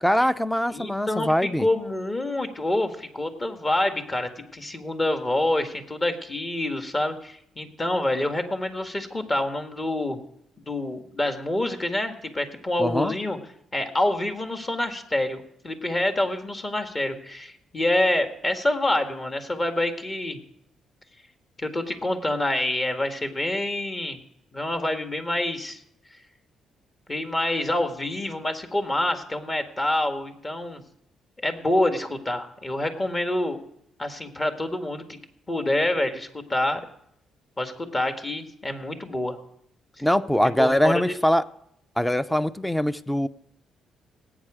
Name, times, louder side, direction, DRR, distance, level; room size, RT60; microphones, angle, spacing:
voice 1, 0.0-1.7 12.8-13.1 40.0-41.4 42.0-43.3, equal, 5° left, 14 dB, 0.6 m, -22 dB
voice 2, 0.7-10.2 10.7-13.4 13.7-20.4 21.6-24.2 24.5-25.8 27.1-30.8 31.4-33.6 34.0-35.2 35.5-36.8 37.6-39.4 40.6-41.1, left 1 dB, 25° left, 6 dB, 1.8 m, -27 dB
17.5 x 8.9 x 5.0 m, 0.73 s
cardioid pair, 90°, 0 cm